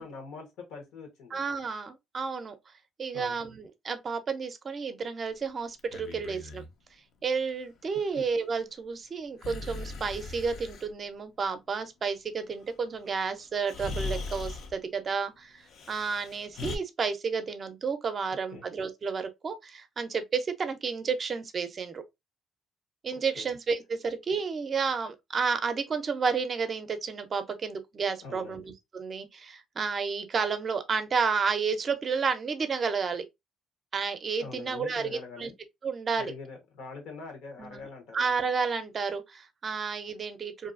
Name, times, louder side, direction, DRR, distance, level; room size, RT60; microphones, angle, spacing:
voice 1, 0.0-1.4 3.1-3.4 8.1-8.3 18.5-18.7 23.4-23.5 28.2-28.6 34.4-35.5 36.2-38.3, left 4 dB, 85° left, 1.0 m, -43 dB
voice 2, 1.3-2.6 3.0-6.6 7.2-22.0 23.0-33.2 33.9-35.5 35.8-36.3 37.6-37.9 38.1-40.7, right 5 dB, 40° right, 0.5 m, -31 dB
Breathing, 5.8-6.7 9.4-10.9 13.0-13.1 13.7-14.8 15.7-16.8, left 3 dB, 70° left, 0.5 m, -38 dB
2.6 x 2.3 x 2.4 m
cardioid pair, 105°, 0 cm